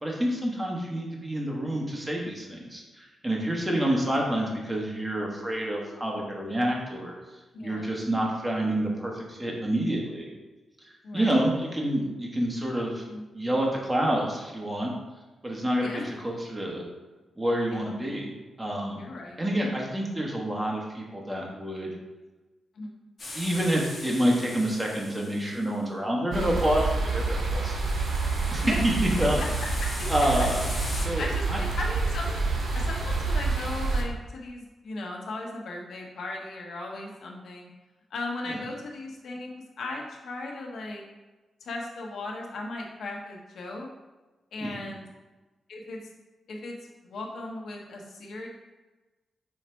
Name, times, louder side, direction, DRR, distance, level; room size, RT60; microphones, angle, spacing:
voice 1, 0.0-7.1 7.6-10.3 10.8-13.0 13.3-14.9 15.4-16.8 17.4-18.3 18.6-19.0 19.4-21.9 23.3-27.7 28.5-28.6 29.2-29.4 30.1-30.6 30.9-31.6 38.5-38.6 44.6-44.9, right 1 dB, 10° right, -2 dB, 1.4 m, -28 dB
voice 2, 3.7-4.0 7.5-7.9 11.0-11.3 13.1-13.2 15.8-16.1 17.7-17.8 18.9-19.4 22.7-23.0 28.6-28.8 29.4-29.5 29.8-30.4 31.0-32.4 32.7-37.7 38.1-39.5 39.8-41.0 41.6-43.9 44.5-45.0 45.7-46.0 46.5-48.5, left 2 dB, 75° left, 0 dB, 1.3 m, -37 dB
sound 1, 23.2-25.7 27.7-31.0, left 2 dB, 45° left, 2.1 m, -40 dB
sound 2, 26.3-34.0, right 3 dB, 65° right, 1.3 m, -28 dB
5.8 x 4.1 x 4.5 m, 1.2 s
cardioid pair, 100°, 0 cm